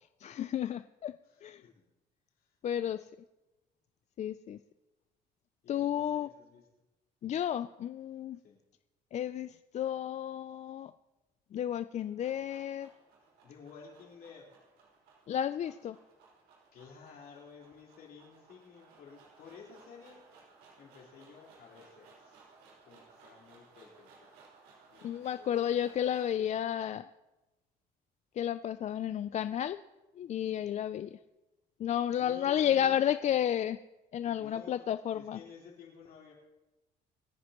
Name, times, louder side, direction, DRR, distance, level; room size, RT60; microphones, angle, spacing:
voice 1, 0.2-1.1 1.4-1.6 2.6-3.1 4.2-4.6 5.7-6.3 7.2-8.4 9.1-10.9 11.5-12.9 15.3-16.0 25.0-27.1 28.4-29.8 30.2-31.2 31.8-33.8 34.1-35.4, left 10 dB, 45° left, 13 dB, 0.4 m, -32 dB
voice 2, 1.2-1.9 2.4-2.6 5.6-6.7 8.4-8.6 13.2-14.6 16.7-20.2 20.8-22.5 22.8-24.3 24.9-25.7 32.1-33.1 34.2-36.3, left 6 dB, 65° left, -2 dB, 4.4 m, -53 dB
sound 1, 11.9-26.4, right 4 dB, 90° right, 5.6 m, -60 dB
27.5 x 9.4 x 3.1 m, 1.0 s
cardioid pair, 110°, 17 cm